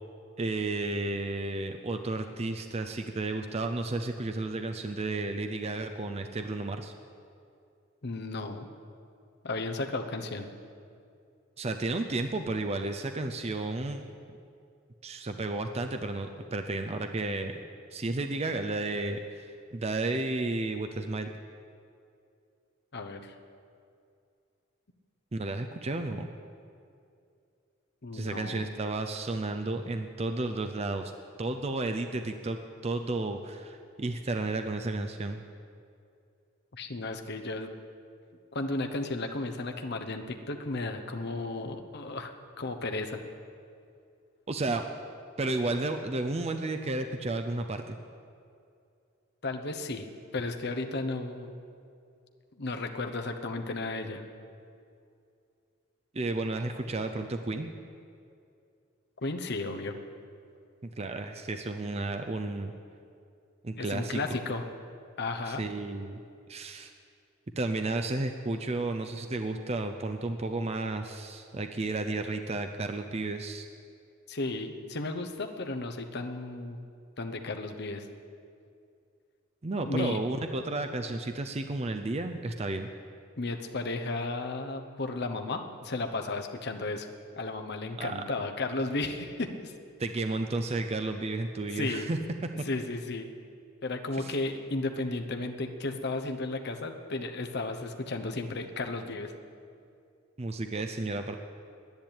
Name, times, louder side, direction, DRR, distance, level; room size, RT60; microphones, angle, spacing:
voice 1, 0.4-6.9 11.6-14.2 15.0-17.5 17.9-21.3 25.3-26.3 28.1-31.1 31.4-35.4 44.5-44.9 45.4-48.0 56.1-57.7 60.8-62.7 63.6-64.2 65.5-66.2 66.5-66.9 67.6-73.7 79.6-82.9 88.0-88.2 90.0-92.2 94.2-94.3 100.4-101.3, right 2 dB, 30° right, 6 dB, 0.5 m, -32 dB
voice 2, 8.0-8.7 9.4-10.5 22.9-23.3 28.0-28.7 36.7-37.7 38.5-43.2 49.4-50.1 50.3-51.5 52.6-54.2 59.2-60.0 63.8-64.6 65.2-65.6 74.3-76.8 77.2-78.1 79.8-80.2 83.4-87.1 87.4-89.7 91.7-92.1 92.6-93.3 93.8-99.3, left 2 dB, 50° left, 5 dB, 0.9 m, -34 dB
10.5 x 10.0 x 8.9 m, 2.4 s
head